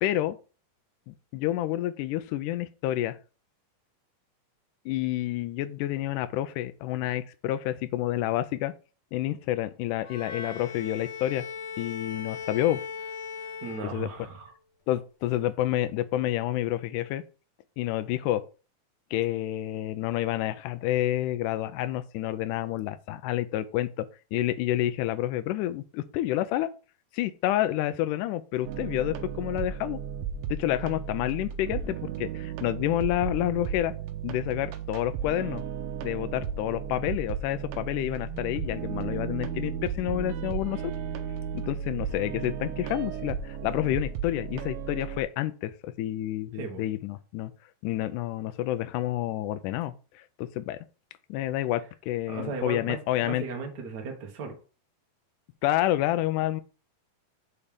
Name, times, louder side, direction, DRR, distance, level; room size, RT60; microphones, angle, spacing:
voice 1, 0.0-0.4 1.1-3.2 4.8-8.7 9.1-11.4 11.8-12.8 13.9-14.1 14.9-17.2 17.8-18.4 19.1-26.7 27.1-30.0 30.5-33.9 34.2-35.6 36.0-40.9 41.5-47.5 47.8-50.8 51.3-53.4 55.6-56.6, left 14 dB, 85° left, 11 dB, 1.8 m, -29 dB
Bowed string instrument, 10.0-14.5, left 6 dB, 60° left, 2.2 m, -39 dB
voice 2, 13.6-14.5 46.5-46.8 52.3-54.6, right 5 dB, 50° right, 2 dB, 1.2 m, -36 dB
sound 1, 28.6-45.2, right 7 dB, 80° right, 2.4 m, -35 dB
6.8 x 4.2 x 5.1 m, 0.35 s
omnidirectional pair, 4.2 m